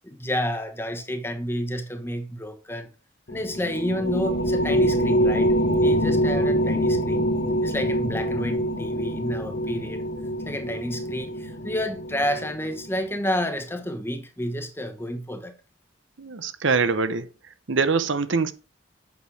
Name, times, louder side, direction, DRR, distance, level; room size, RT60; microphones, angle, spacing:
voice 1, 0.0-2.9 3.3-5.5 5.8-7.3 7.6-10.1 10.5-15.5, equal, 10° left, 1.1 m, -30 dB
sound 1, 3.3-13.0, equal, 55° left, 1.3 m, -25 dB
voice 2, 16.2-17.3 17.7-18.5, right 4 dB, 70° right, 0.8 m, -23 dB
8.6 x 6.4 x 4.8 m
head